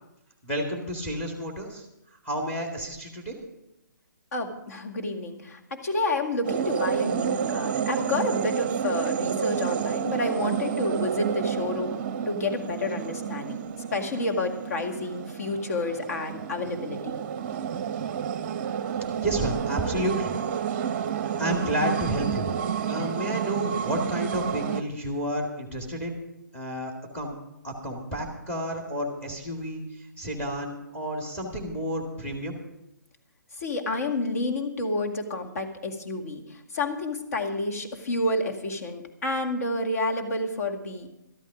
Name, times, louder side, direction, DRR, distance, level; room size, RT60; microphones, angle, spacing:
voice 1, 0.4-1.9 2.2-3.4 19.2-20.4 21.2-26.2 26.5-27.3 27.6-32.6, equal, 10° left, 1 dB, 2.1 m, -31 dB
voice 2, 4.3-12.0 12.3-13.6 13.9-17.1 33.6-36.4 36.7-41.1, left 2 dB, 50° left, 4 dB, 2.0 m, -29 dB
sound 1, 6.4-24.8, right 8 dB, 35° right, 0.7 m, -30 dB
13.0 x 12.5 x 5.0 m, 0.85 s
figure-of-eight pair, 135°, 11 cm